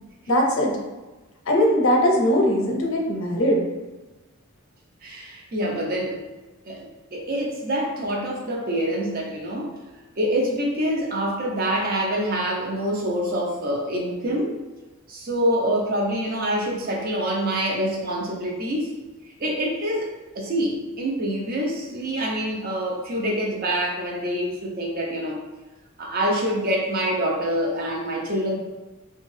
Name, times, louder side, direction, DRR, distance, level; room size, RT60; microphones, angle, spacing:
voice 1, 0.3-0.7 1.5-3.6, equal, 65° left, 0 dB, 0.6 m, -20 dB
voice 2, 5.0-6.2 6.7-9.7 10.2-14.6 15.1-18.9 19.4-25.4 26.0-28.6, equal, 45° right, -1 dB, 0.5 m, -26 dB
2.6 x 2.3 x 3.1 m, 1.1 s
head